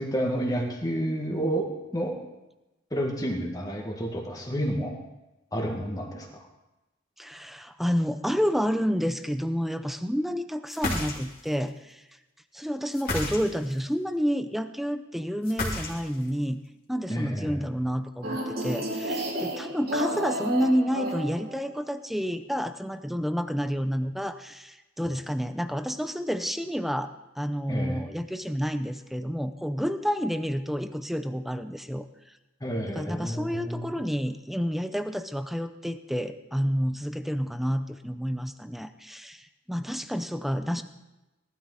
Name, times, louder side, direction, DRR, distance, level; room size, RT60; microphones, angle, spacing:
voice 1, 0.0-2.2 2.9-5.0 5.5-6.3 17.1-17.6 27.7-28.0 32.6-34.0, equal, 20° left, 0 dB, 2.1 m, -30 dB
voice 2, 7.2-12.0 12.5-16.6 16.9-32.0 32.9-40.8, equal, ahead, 10 dB, 0.6 m, -29 dB
sound 1, 10.7-11.5 12.9-13.8 15.4-16.3, left 2 dB, 45° left, 2.8 m, -31 dB
sound 2, 18.2-21.8, right 1 dB, 50° right, 3.6 m, -31 dB
18.5 x 12.5 x 4.1 m, 1.0 s
head